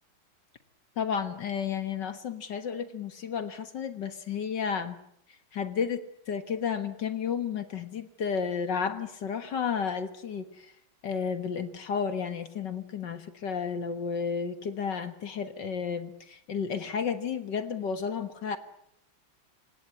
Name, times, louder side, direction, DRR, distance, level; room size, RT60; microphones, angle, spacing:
voice 1, 1.0-5.0 5.5-10.4 11.0-18.6, left 6 dB, 60° left, 11 dB, 2.0 m, -32 dB
28.0 x 17.0 x 9.5 m, 0.71 s
omnidirectional pair, 2.2 m